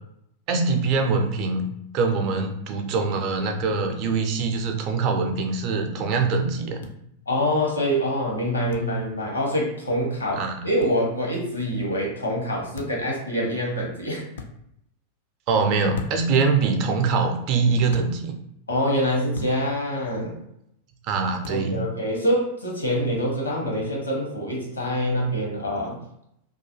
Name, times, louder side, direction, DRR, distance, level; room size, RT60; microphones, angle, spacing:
voice 1, 0.5-1.7 1.9-6.8 10.4-10.6 15.5-18.4 21.0-21.8, right 4 dB, 40° right, 4 dB, 0.5 m, -23 dB
sound 1, 6.8-7.0 8.7-8.9 10.8-11.0 12.7-13.1 14.3-14.5 15.9-16.4 17.9-18.1 19.3-19.6 21.4-21.6, left 4 dB, 60° left, 0.3 m, -36 dB
voice 2, 7.3-14.2 18.7-20.4 21.5-26.0, equal, 80° left, -1 dB, 0.8 m, -25 dB
2.3 x 2.2 x 2.9 m, 0.76 s
figure-of-eight pair, 90°, 0 cm